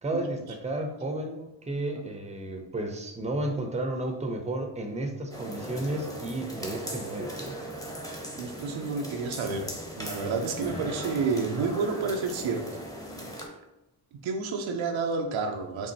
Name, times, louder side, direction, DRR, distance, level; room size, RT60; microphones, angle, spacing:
voice 1, 0.0-7.6, right 1 dB, 15° right, 4 dB, 0.6 m, -32 dB
sound 1, 5.3-13.5, equal, 5° left, 0.9 m, -38 dB
voice 2, 8.4-12.6 14.2-15.9, right 4 dB, 80° right, 3 dB, 0.6 m, -30 dB
6.0 x 2.0 x 2.7 m, 0.95 s
supercardioid pair, 45°, 47 cm